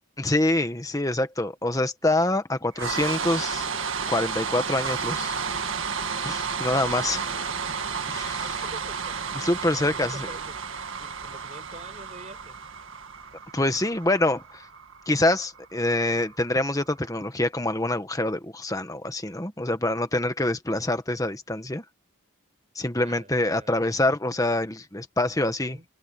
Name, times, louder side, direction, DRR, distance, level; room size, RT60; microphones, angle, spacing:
voice 1, 0.2-3.7 4.1-5.4 6.2-7.3 8.1-8.4 9.3-10.3 13.5-14.6 15.1-21.8 22.7-25.8, left 1 dB, 15° left, 1.4 m, -25 dB
sound 1, 2.7-16.9, right 5 dB, 60° right, 1.9 m, -32 dB
voice 2, 6.9-7.7 8.4-9.2 9.8-10.6 11.0-12.6 23.0-23.8 25.6-25.9, right 2 dB, 35° right, 4.7 m, -46 dB
head